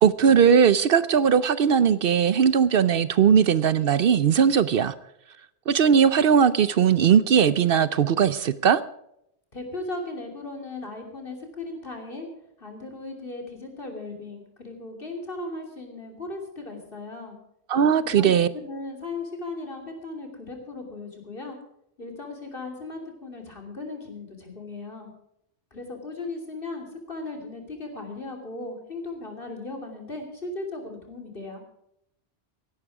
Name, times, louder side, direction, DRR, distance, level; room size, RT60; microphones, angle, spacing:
voice 1, 0.0-4.9 5.7-8.8 17.7-18.5, right 7 dB, 65° right, 16 dB, 0.8 m, -19 dB
voice 2, 9.5-12.3 12.6-17.4 18.0-21.6 22.0-25.1 25.7-31.6, left 2 dB, 60° left, 2 dB, 3.2 m, -37 dB
16.0 x 11.5 x 4.8 m, 0.77 s
omnidirectional pair, 1.1 m